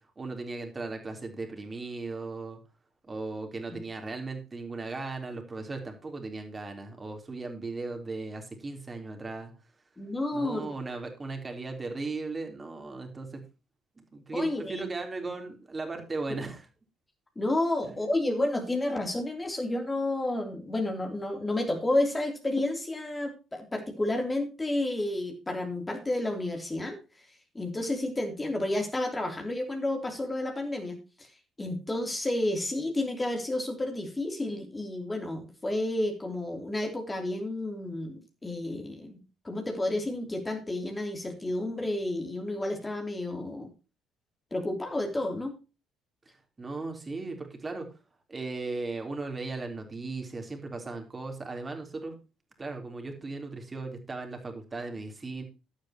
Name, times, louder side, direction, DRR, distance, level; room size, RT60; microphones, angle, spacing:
voice 1, 0.2-2.6 3.1-9.5 10.3-13.4 14.1-16.6 17.8-18.0 46.6-47.9 48.3-52.2 52.6-55.4, right 3 dB, 25° right, 4 dB, 3.5 m, -37 dB
voice 2, 10.0-10.7 14.3-14.8 17.3-27.0 27.5-31.3 31.6-39.2 39.4-43.7 44.5-45.5, left 1 dB, 20° left, 3 dB, 3.1 m, -31 dB
12.0 x 11.5 x 2.9 m, 0.31 s
figure-of-eight pair, 50°, 0 cm